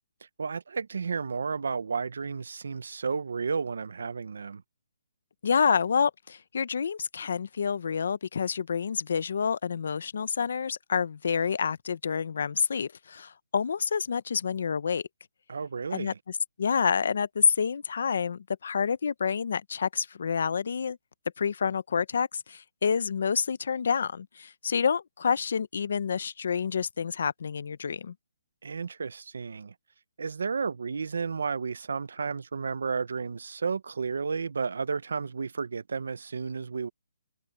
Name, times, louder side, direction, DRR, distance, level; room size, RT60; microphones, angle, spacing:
voice 1, 0.4-4.6 15.5-16.2 28.6-29.7 30.2-36.9, right 5 dB, 65° right, 0.8 m, -32 dB
voice 2, 5.4-15.0 15.9-16.1 16.6-21.0 21.4-28.1, left 6 dB, 50° left, 0.7 m, -28 dB
hypercardioid pair, 180°, 0 cm